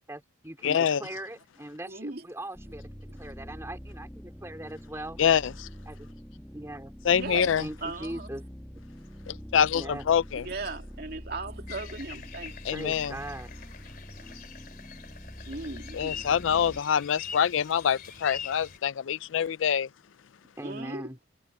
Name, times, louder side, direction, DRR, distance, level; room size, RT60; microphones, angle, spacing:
voice 1, 0.1-2.9 3.2-5.2 5.9-6.9 7.6-8.4 9.7-10.0 12.7-13.5 20.6-21.2, right 1 dB, 15° right, 3.1 m, -40 dB
voice 2, 0.6-1.0 5.2-5.7 7.0-7.6 9.3-10.5 12.6-13.2 15.9-19.9, left 8 dB, 80° left, 0.4 m, -25 dB
voice 3, 1.8-2.2 7.1-7.5 7.8-8.3 10.4-12.9 15.5-16.2 19.4-19.5 20.6-21.2, right 3 dB, 50° right, 2.7 m, -38 dB
sound 1, 2.5-16.8, equal, 5° left, 1.6 m, -45 dB
sound 2, 11.7-18.8, left 8 dB, 45° left, 3.0 m, -44 dB
head